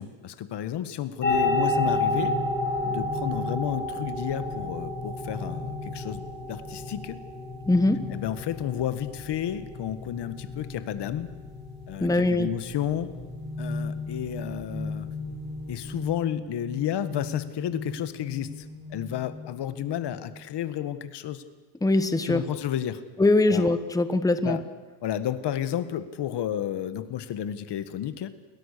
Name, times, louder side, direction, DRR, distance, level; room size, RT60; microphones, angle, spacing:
voice 1, 0.0-2.4 2.8-7.2 8.1-11.3 11.9-13.1 13.6-15.1 15.7-18.6 18.9-21.4 22.2-23.0 23.5-23.7 24.4-24.6 25.0-28.3, left 10 dB, 70° left, 12 dB, 1.6 m, -32 dB
sound 1, 1.2-16.0, left 2 dB, 25° left, 7.2 m, -31 dB
voice 2, 7.7-8.1 12.0-12.5 21.8-22.4 23.2-24.6, left 2 dB, 10° left, 10 dB, 1.1 m, -22 dB
sound 2, 12.7-20.5, left 2 dB, 55° right, 4.5 m, -38 dB
29.5 x 22.0 x 6.8 m, 1.2 s
cardioid pair, 150°, 42 cm